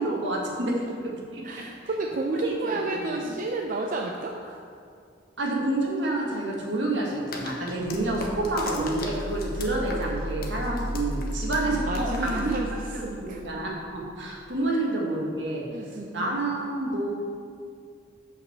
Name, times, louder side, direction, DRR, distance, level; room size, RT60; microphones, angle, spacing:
voice 1, 0.0-1.6 2.3-3.3 5.4-12.5 12.9-15.6 16.1-17.1, right 2 dB, 75° right, -2 dB, 1.8 m, -29 dB
voice 2, 1.4-4.6 11.8-13.6 14.7-14.8 15.7-16.5, right 2 dB, 45° right, 1 dB, 0.5 m, -32 dB
sound 1, 7.3-13.1, left 3 dB, 55° left, 1.0 m, -40 dB
sound 2, 7.8-14.3, equal, 85° left, 0.8 m, -35 dB
6.3 x 5.4 x 7.1 m, 2.3 s
head